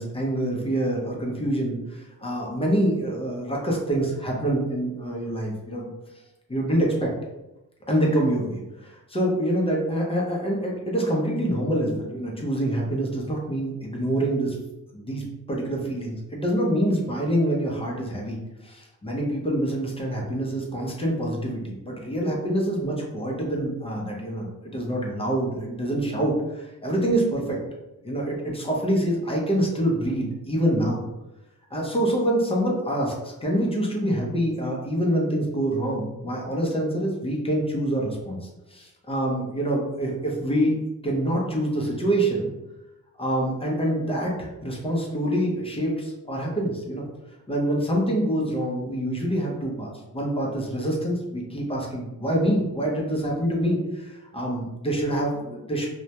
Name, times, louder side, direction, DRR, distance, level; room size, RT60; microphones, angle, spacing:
voice 1, 0.0-5.9 6.5-7.1 7.9-14.6 14.9-27.6 28.0-31.0 31.7-40.7 41.0-42.5 43.2-47.1 47.5-55.9, right 1 dB, 20° left, -2 dB, 0.5 m, -26 dB
2.1 x 2.1 x 2.8 m, 0.96 s
cardioid pair, 115°, 32 cm